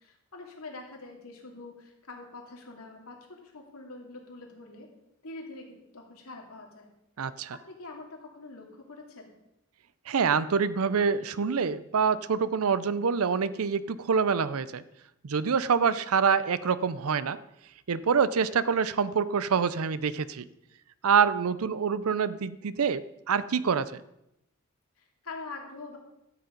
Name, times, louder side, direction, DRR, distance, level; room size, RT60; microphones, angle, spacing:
voice 1, 0.0-4.9 5.2-6.9 7.7-9.3 25.0-26.0, left 3 dB, 75° left, 1 dB, 2.6 m, -44 dB
voice 2, 7.2-7.6 10.1-14.8 15.2-17.4 17.9-20.5 21.0-24.0, right 6 dB, 75° right, 16 dB, 0.5 m, -26 dB
13.0 x 8.1 x 5.2 m, 0.84 s
head